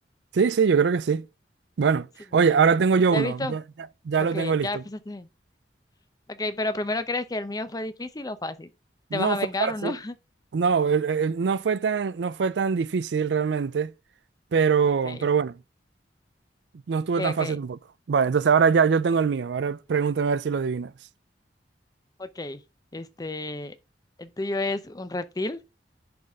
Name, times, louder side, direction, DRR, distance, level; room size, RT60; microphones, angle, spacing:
voice 1, 0.3-1.3 1.8-2.1 2.3-3.6 4.0-4.8 9.1-9.9 10.5-13.9 14.5-15.6 16.9-17.8 18.1-20.9, right 6 dB, 80° right, 0.4 m, -23 dB
voice 2, 3.1-3.6 4.3-5.3 6.3-8.7 9.1-10.1 15.0-15.3 17.2-17.6 22.2-22.6 22.9-23.8 24.2-25.6, left 2 dB, 20° left, 0.6 m, -31 dB
10.5 x 4.1 x 3.6 m
head